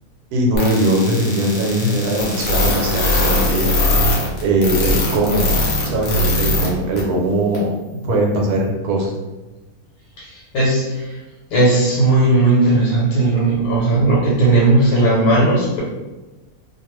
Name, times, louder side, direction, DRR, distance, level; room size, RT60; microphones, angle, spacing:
voice 1, 0.3-3.7 4.4-5.5 5.8-7.7 8.0-9.1, right 1 dB, 80° right, 0 dB, 1.1 m, -20 dB
sound 1, 0.5-6.7 7.0-7.1 7.5-7.6, left 2 dB, 60° left, 0.9 m, -19 dB
voice 2, 10.2-11.2 11.5-15.8, right 2 dB, 80° left, -6 dB, 1.2 m, -16 dB
2.4 x 2.3 x 3.0 m, 1.1 s
omnidirectional pair, 1.6 m